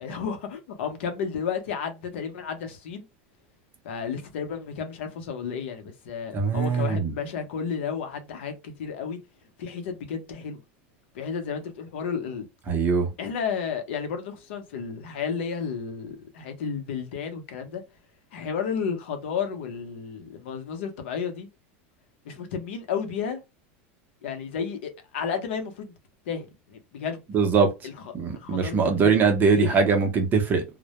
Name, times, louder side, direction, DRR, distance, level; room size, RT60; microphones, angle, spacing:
voice 1, 0.0-3.1 3.8-9.2 9.6-10.6 11.1-12.5 13.2-17.8 18.3-21.5 22.2-23.4 24.2-25.9 26.3-27.2 27.8-29.8, left 6 dB, 85° left, 0.7 m, -32 dB
voice 2, 6.3-7.1 12.7-13.1 27.3-27.7 28.1-30.6, right 5 dB, 30° right, 0.6 m, -22 dB
2.1 x 2.0 x 2.8 m
supercardioid pair, 135°, 6 cm